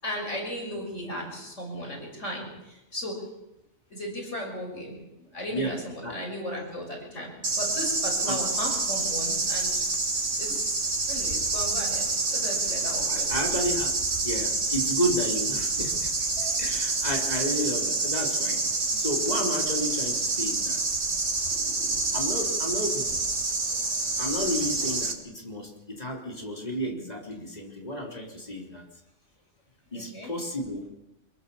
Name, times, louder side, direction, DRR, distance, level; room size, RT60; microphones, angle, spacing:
voice 1, 0.0-3.2 3.9-5.0 5.3-7.3 7.6-9.7 10.4-10.7 11.1-13.3 21.5-22.4 29.9-30.3, equal, 80° left, 0 dB, 6.7 m, -36 dB
voice 2, 5.5-6.2 8.3-8.4 13.1-13.9 14.2-16.1 16.4-18.6 19.0-20.8 22.1-23.2 24.2-28.8 29.9-30.9, equal, 35° left, 0 dB, 3.9 m, -32 dB
sound 1, 7.4-25.1, right 3 dB, 80° right, 2.6 m, -27 dB
25.0 x 22.0 x 7.1 m, 0.90 s
omnidirectional pair, 1.2 m